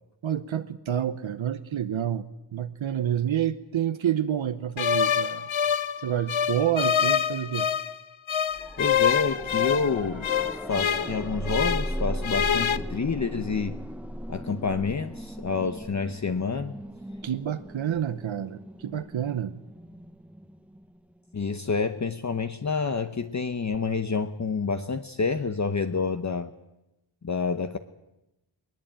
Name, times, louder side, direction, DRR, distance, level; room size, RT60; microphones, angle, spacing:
voice 1, 0.2-2.3 2.5-5.5 6.0-7.7 17.2-19.6, right 10 dB, 85° right, 10 dB, 1.0 m, -28 dB
sound 1, 4.8-7.9 8.3-12.0 12.2-12.8, left 8 dB, 85° left, 0.9 m, -26 dB
sound 2, 8.5-21.4 23.7-23.8, equal, 5° right, 0.9 m, -37 dB
voice 2, 8.8-10.3 10.7-13.8 14.3-16.8 21.3-26.5 27.2-27.8, left 4 dB, 40° left, 8 dB, 0.9 m, -28 dB
21.0 x 20.0 x 8.8 m, 0.92 s
wide cardioid pair, 140°, 46 cm